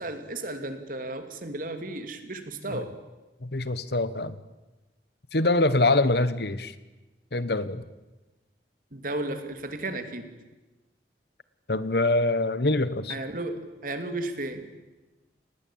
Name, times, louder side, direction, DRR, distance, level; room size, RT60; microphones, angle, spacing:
voice 1, 0.0-2.9 8.9-10.3 13.1-14.6, right 2 dB, 50° right, 7 dB, 2.9 m, -34 dB
voice 2, 3.4-4.4 5.3-6.7 7.3-7.8 11.7-13.2, left 2 dB, 60° left, 14 dB, 1.4 m, -24 dB
29.5 x 20.0 x 8.8 m, 1.1 s
head